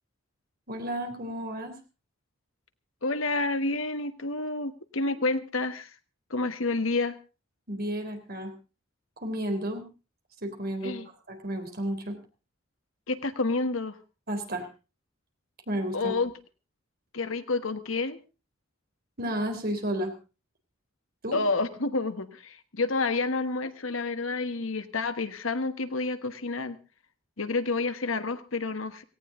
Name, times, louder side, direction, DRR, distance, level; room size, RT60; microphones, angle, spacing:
voice 1, 0.7-1.8 7.7-8.5 9.2-9.8 10.4-11.0 11.3-12.2 14.3-14.7 15.7-16.1 19.2-20.1 21.2-21.4, right 1 dB, 50° right, 5 dB, 3.5 m, -32 dB
voice 2, 3.0-5.9 6.3-7.1 10.8-11.1 13.1-14.0 15.9-16.3 17.1-18.2 21.3-26.8 27.4-29.0, left 3 dB, 80° left, 10 dB, 1.5 m, -29 dB
17.5 x 17.0 x 3.8 m, 0.32 s
head